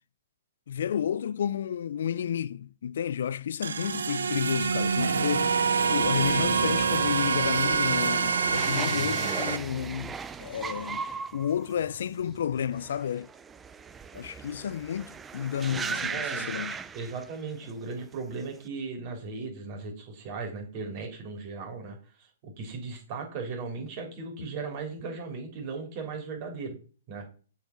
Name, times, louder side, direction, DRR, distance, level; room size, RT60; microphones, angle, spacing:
voice 1, 0.7-11.0 11.3-13.3 14.1-16.8, left 9 dB, 60° left, 0.4 m, -31 dB
sound 1, 3.6-9.6, right 5 dB, 75° right, 0.7 m, -26 dB
sound 2, 4.6-17.7 18.0-18.6, right 5 dB, 15° right, 0.5 m, -38 dB
voice 2, 15.7-16.7 16.9-26.8 27.1-27.3, right 4 dB, 40° right, 3.5 m, -37 dB
6.7 x 5.1 x 5.2 m
figure-of-eight pair, 120°, 0 cm